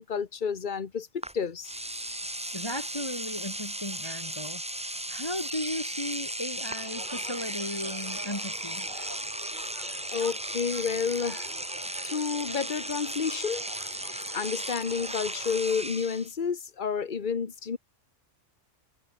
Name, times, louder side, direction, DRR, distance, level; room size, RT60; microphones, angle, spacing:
voice 1, 0.0-1.7 10.1-11.5 12.0-13.7 14.0-17.8, left 6 dB, 40° left, 1.3 m, -30 dB
Engine / Domestic sounds home sounds, 1.2-1.3 1.6-16.3, right 1 dB, 5° right, 1.0 m, -36 dB
voice 2, 2.5-4.6 5.1-8.9, left 1 dB, 20° left, 3.4 m, -36 dB
sound 1, 6.7-15.7, right 1 dB, 40° right, 5.0 m, -47 dB
omnidirectional pair, 1.3 m